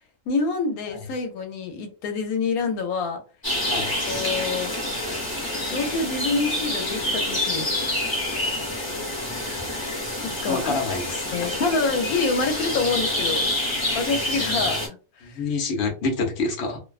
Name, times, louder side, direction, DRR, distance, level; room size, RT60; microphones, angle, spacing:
voice 1, 0.3-3.2 4.1-4.8 5.7-7.7 10.2-10.7 11.3-13.6 13.9-15.4, left 4 dB, 85° left, 1.1 m, -27 dB
sound 1, 3.4-14.9, left 1 dB, 20° left, 0.8 m, -27 dB
voice 2, 10.5-11.5 15.2-16.8, left 3 dB, 55° left, 0.9 m, -27 dB
2.5 x 2.2 x 2.3 m
omnidirectional pair, 1.5 m